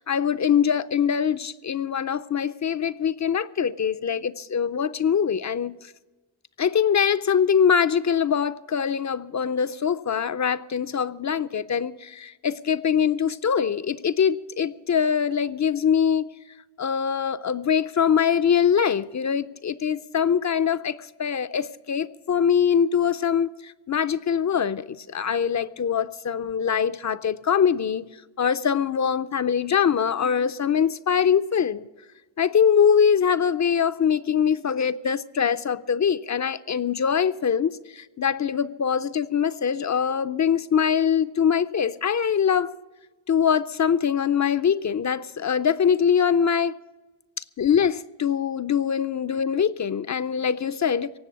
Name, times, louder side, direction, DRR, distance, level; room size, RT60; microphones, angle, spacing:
voice 1, 0.0-5.7 6.6-16.3 16.8-28.1 28.4-31.9 32.4-42.7 43.3-46.8 47.6-51.1, left 7 dB, 40° left, 14 dB, 0.5 m, -23 dB
17.5 x 7.8 x 8.3 m, 1.2 s
wide cardioid pair, 105°, 46 cm